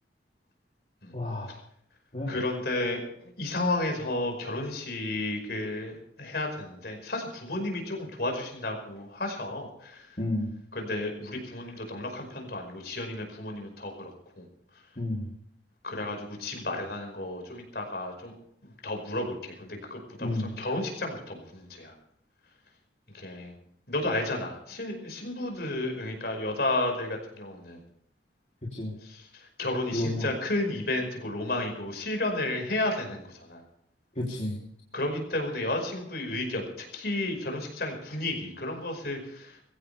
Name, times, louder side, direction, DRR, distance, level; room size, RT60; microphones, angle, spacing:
voice 1, 1.1-1.5 2.1-2.4 10.2-10.5 15.0-15.3 20.2-20.5 28.6-28.9 29.9-30.3 34.1-34.6, left 1 dB, 40° left, -4 dB, 3.2 m, -31 dB
voice 2, 2.3-5.9 6.2-10.1 10.7-14.1 14.4-14.5 15.8-18.3 18.6-21.9 23.1-23.5 23.9-27.8 29.0-33.6 34.9-39.6, left 2 dB, 55° left, 3 dB, 5.4 m, -32 dB
21.5 x 16.5 x 3.5 m, 0.69 s
head